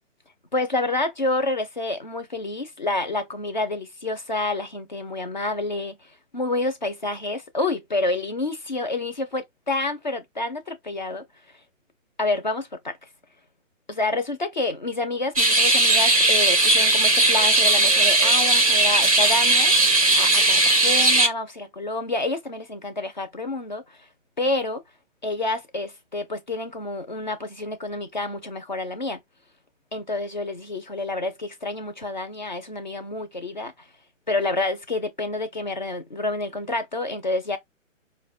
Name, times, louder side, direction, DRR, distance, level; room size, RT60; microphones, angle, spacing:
voice 1, 0.5-11.3 12.2-13.0 13.9-19.7 20.1-24.1 24.4-24.8 25.2-29.2 29.9-33.7 34.3-37.6, left 2 dB, 40° left, 0.4 m, -28 dB
sound 1, 15.4-21.3, right 2 dB, 30° right, 0.4 m, -18 dB
4.5 x 2.1 x 2.3 m
hypercardioid pair, 170°, 39 cm